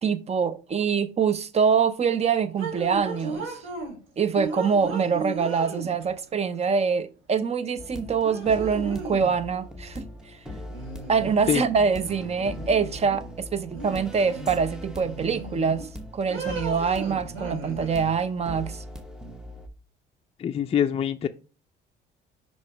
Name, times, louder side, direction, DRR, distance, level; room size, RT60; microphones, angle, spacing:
voice 1, 0.0-3.5 4.2-10.1 11.1-18.8, right 6 dB, 30° right, 0.6 m, -25 dB
sound 1, 2.6-4.0 4.3-6.2 7.7-7.8 8.2-9.3 10.7-11.7 12.0-13.2 13.7-14.6 15.0-15.9 16.3-18.1, right 3 dB, 85° right, 3.9 m, -36 dB
sound 2, 7.8-19.7, left 1 dB, 5° right, 0.9 m, -40 dB
voice 2, 20.4-21.3, left 9 dB, 30° left, 0.4 m, -24 dB
5.4 x 4.8 x 4.6 m
cardioid pair, 105°, 20 cm